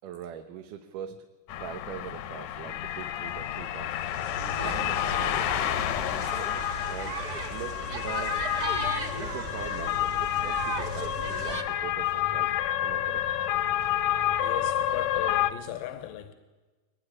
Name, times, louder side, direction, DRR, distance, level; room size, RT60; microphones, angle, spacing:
voice 1, 0.0-1.3 1.6-4.0 4.6-6.1 6.9-7.2 7.5-8.5 9.2-13.3, right 9 dB, 75° right, 2.6 m, -42 dB
sound 1, 1.5-15.5, left 12 dB, 70° left, 1.9 m, -29 dB
sound 2, 3.9-11.6, right 2 dB, 35° right, 1.9 m, -36 dB
voice 2, 14.4-16.3, left 13 dB, 85° left, 2.7 m, -37 dB
22.0 x 19.5 x 9.8 m
omnidirectional pair, 3.8 m